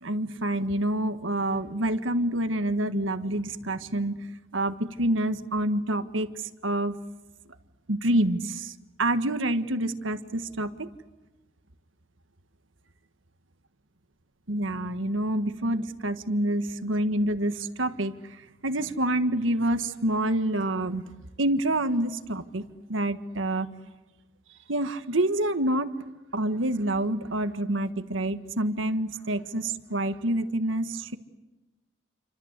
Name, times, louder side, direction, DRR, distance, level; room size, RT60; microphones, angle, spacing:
voice 1, 0.0-4.2 4.5-7.0 7.9-8.7 9.0-10.9 14.5-18.1 18.6-21.0 21.4-23.7 24.7-25.9 26.3-31.2, right 1 dB, 85° right, 10 dB, 1.5 m, -27 dB
29.0 x 25.5 x 8.2 m, 1.1 s
head